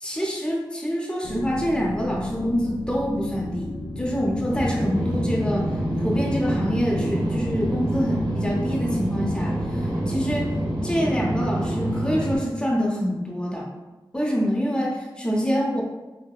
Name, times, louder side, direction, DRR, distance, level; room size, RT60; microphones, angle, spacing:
voice 1, 0.0-5.7 6.0-10.5 10.8-13.7 14.1-15.8, equal, 10° left, -3 dB, 0.6 m, -26 dB
sound 1, 1.2-10.8, left 2 dB, 85° left, 0.4 m, -34 dB
sound 2, 4.5-12.4, right 1 dB, 70° right, 1.3 m, -27 dB
4.6 x 2.1 x 2.3 m, 1.1 s
wide cardioid pair, 45°, 9 cm